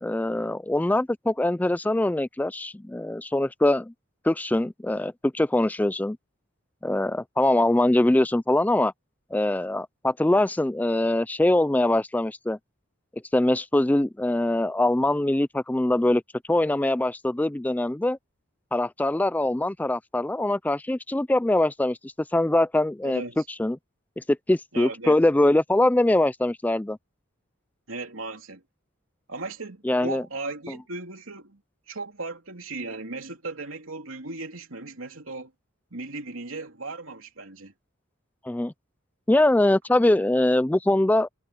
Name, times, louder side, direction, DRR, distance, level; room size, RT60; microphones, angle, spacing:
voice 1, 0.0-3.9 4.2-6.2 6.8-8.9 9.3-12.6 13.3-16.2 16.5-18.2 18.7-23.2 23.6-23.8 24.2-27.0 29.8-30.2 38.4-38.7 39.3-41.3, left 1 dB, 10° left, 0.3 m, -23 dB
voice 2, 23.0-23.4 24.7-25.2 27.9-28.6 29.3-31.6 31.9-35.5 35.9-37.7, right 3 dB, 90° right, 3.1 m, -36 dB
head